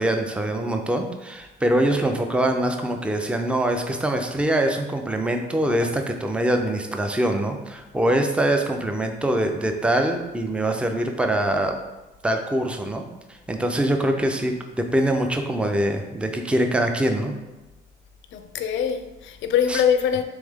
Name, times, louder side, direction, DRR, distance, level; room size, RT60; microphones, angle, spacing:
voice 1, 0.0-11.8 12.2-17.3 19.7-19.8, right 1 dB, 5° right, 0.4 m, -23 dB
voice 2, 18.3-20.2, left 8 dB, 75° left, 0.4 m, -23 dB
3.5 x 3.2 x 3.5 m
cardioid pair, 90°, 20 cm